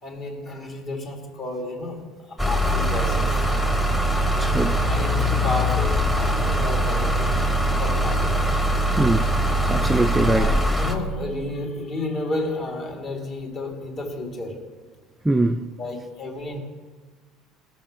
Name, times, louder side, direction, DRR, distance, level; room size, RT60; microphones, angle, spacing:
voice 1, 0.0-3.4 4.9-8.5 10.3-14.7 15.8-16.6, left 2 dB, 40° left, 2.2 m, -32 dB
sound 1, 2.4-10.9, equal, 10° left, 1.2 m, -22 dB
voice 2, 4.4-4.8 9.0-9.3 9.7-10.6 15.2-15.6, right 2 dB, 10° right, 0.4 m, -22 dB
18.0 x 6.2 x 5.1 m
cardioid pair, 130°, 0 cm